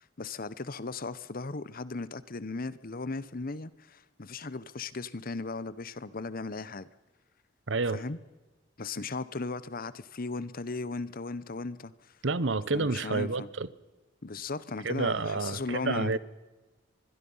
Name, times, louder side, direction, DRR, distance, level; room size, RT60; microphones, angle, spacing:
voice 1, 0.2-6.9 7.9-8.2 8.8-12.1 12.7-13.5 14.2-16.2, left 3 dB, 50° left, 1.0 m, -37 dB
voice 2, 7.7-8.0 12.2-13.7 14.8-16.2, right 3 dB, 75° right, 1.0 m, -29 dB
25.0 x 21.5 x 5.6 m
head